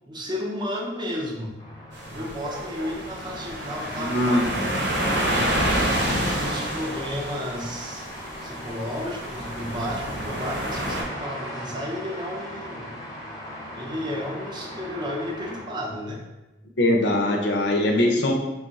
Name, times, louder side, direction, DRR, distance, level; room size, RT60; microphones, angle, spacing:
voice 1, 0.1-1.6 2.1-4.4 6.2-8.1 8.4-12.9 13.7-16.2, equal, 25° right, -1 dB, 0.6 m, -32 dB
sound 1, 1.6-15.6, equal, 20° left, 0.7 m, -39 dB
sound 2, 1.9-11.0, equal, 80° right, 1.0 m, -28 dB
voice 2, 4.0-4.8 16.8-18.3, left 1 dB, 65° left, 2 dB, 0.6 m, -22 dB
3.5 x 2.4 x 3.9 m, 1.1 s
head